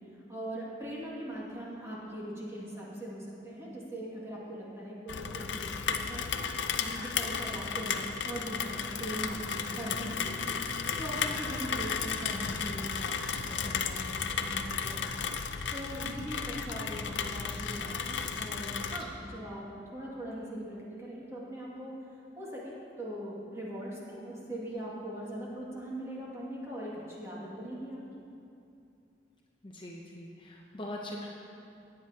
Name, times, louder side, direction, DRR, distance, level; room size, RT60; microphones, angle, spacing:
voice 1, 0.3-6.2 6.6-13.2 13.4-15.1 15.7-21.9 22.4-28.0, right 1 dB, 15° right, -6 dB, 2.2 m, -41 dB
Rain, 5.1-19.0, left 6 dB, 75° left, 0.6 m, -34 dB
voice 2, 29.6-31.3, left 1 dB, 25° left, -2 dB, 0.7 m, -41 dB
17.0 x 9.2 x 2.9 m, 2.6 s
head